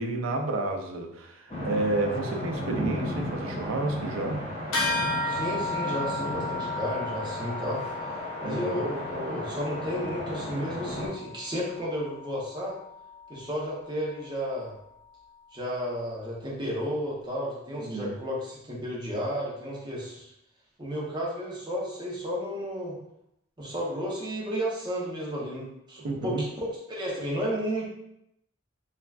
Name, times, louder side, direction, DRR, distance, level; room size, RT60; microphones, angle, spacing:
voice 1, 0.0-4.5 8.4-8.8 17.8-18.2 26.0-26.4, right 2 dB, 85° right, 3 dB, 0.4 m, -30 dB
sound 1, 1.5-11.1, left 1 dB, 30° left, 0.9 m, -35 dB
sound 2, 4.7-14.5, left 2 dB, 75° left, 0.8 m, -35 dB
voice 2, 5.2-7.8 8.4-12.7 13.3-14.7 15.5-20.3 20.8-23.0 23.6-27.9, equal, 20° right, -4 dB, 0.7 m, -32 dB
3.2 x 2.2 x 2.3 m, 0.78 s
head